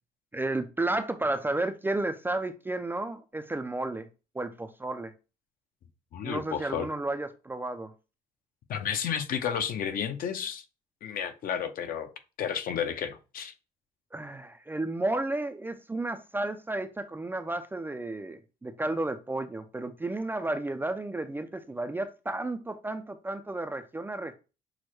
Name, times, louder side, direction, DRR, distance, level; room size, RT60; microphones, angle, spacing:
voice 1, 0.3-4.1 4.3-5.1 6.2-7.9 14.1-24.3, right 2 dB, 10° right, 0.4 m, -32 dB
voice 2, 6.1-6.9 8.7-10.6 11.0-12.1 12.4-13.5, left 8 dB, 55° left, 0.7 m, -32 dB
6.1 x 2.1 x 3.1 m
cardioid pair, 110°, 17 cm